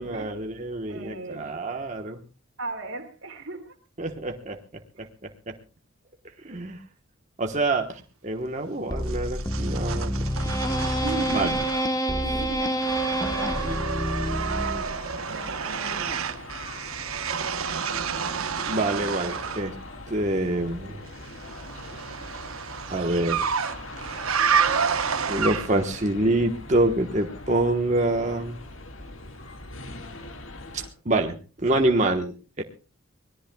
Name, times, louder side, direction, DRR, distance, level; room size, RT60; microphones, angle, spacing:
voice 1, 0.0-2.2 4.0-4.6 5.2-5.5 6.4-6.8 7.4-10.1 11.3-11.5 18.7-19.7 20.1-21.0 22.9-23.4 25.3-28.6 30.7-32.6, right 2 dB, 35° right, 3 dB, 1.2 m, -26 dB
voice 2, 0.9-1.4 2.6-3.7 5.0-5.1 11.0-11.6 11.9-13.9 14.4-14.9 15.3-16.3, right 3 dB, 65° right, -3 dB, 2.4 m, -37 dB
sound 1, 8.9-15.1, right 1 dB, 15° left, 1.1 m, -27 dB
sound 2, 9.1-12.1 12.4-19.7 21.2-26.0, right 6 dB, 85° right, 1.1 m, -30 dB
sound 3, 12.8-30.9, left 2 dB, 70° left, 1.9 m, -42 dB
24.0 x 18.5 x 2.3 m, 0.34 s
head